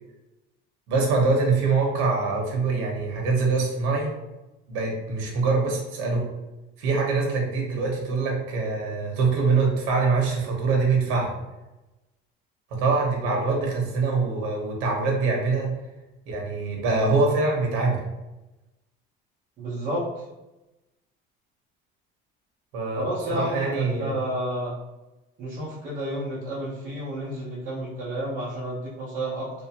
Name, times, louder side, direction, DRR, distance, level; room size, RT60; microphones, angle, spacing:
voice 1, 0.9-4.1 4.7-6.2 6.8-11.3 12.7-15.7 16.3-18.0 22.7-24.1, right 4 dB, 75° right, -1 dB, 1.1 m, -24 dB
voice 2, 19.6-20.2 22.9-24.8 25.4-29.5, right 1 dB, 40° right, -10 dB, 0.9 m, -31 dB
3.3 x 2.8 x 2.9 m, 1.0 s
cardioid pair, 175°, 21 cm